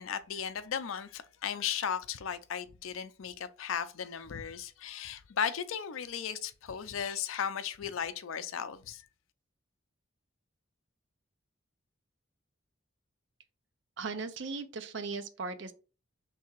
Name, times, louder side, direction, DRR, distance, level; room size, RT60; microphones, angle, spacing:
voice 1, 0.0-9.1, left 8 dB, 80° left, 0.5 m, -36 dB
voice 2, 14.0-15.7, right 4 dB, 60° right, 0.5 m, -37 dB
3.3 x 2.8 x 4.5 m
head